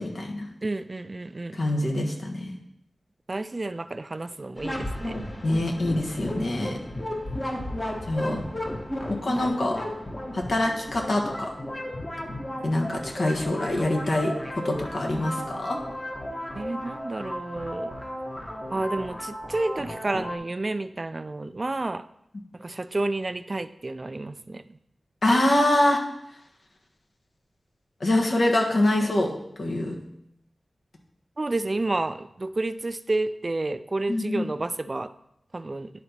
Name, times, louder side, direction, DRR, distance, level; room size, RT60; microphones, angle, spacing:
voice 1, 0.0-0.5 1.5-2.5 5.4-6.8 8.1-8.4 9.1-9.8 10.3-11.5 12.6-15.8 25.2-26.0 28.0-29.3 29.6-30.0 34.1-34.5, left 1 dB, 70° left, 1 dB, 1.3 m, -25 dB
voice 2, 0.6-1.6 3.3-5.2 16.5-17.9 18.7-22.0 22.5-24.6 31.4-35.1 35.5-35.9, right 2 dB, 45° right, 12 dB, 0.3 m, -30 dB
sound 1, 4.6-20.4, left 1 dB, 35° left, 1.3 m, -34 dB
11.0 x 4.0 x 2.9 m, 0.78 s
cardioid pair, 40°, 0 cm